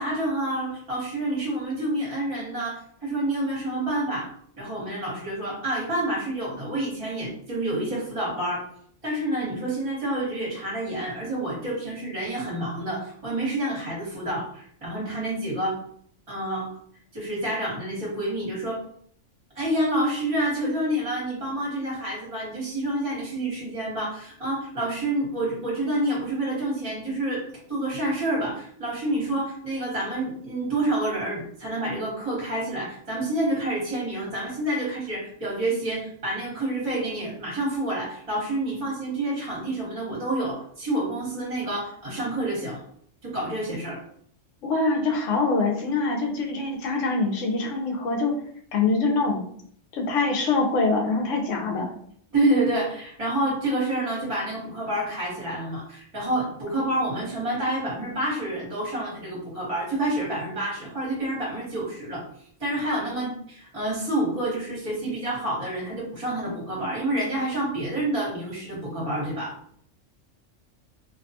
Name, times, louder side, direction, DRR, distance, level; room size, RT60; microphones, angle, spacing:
voice 1, 0.0-4.3 4.6-8.7 9.0-15.8 16.3-16.7 17.1-18.8 19.5-27.4 27.7-42.8 43.2-44.0 52.3-62.2 62.6-69.5, right 1 dB, 30° right, -6 dB, 1.0 m, -28 dB
voice 2, 44.6-48.3 48.7-49.4 49.9-51.9, left 3 dB, 80° left, 1 dB, 1.0 m, -24 dB
2.5 x 2.2 x 2.7 m, 0.63 s
omnidirectional pair, 1.3 m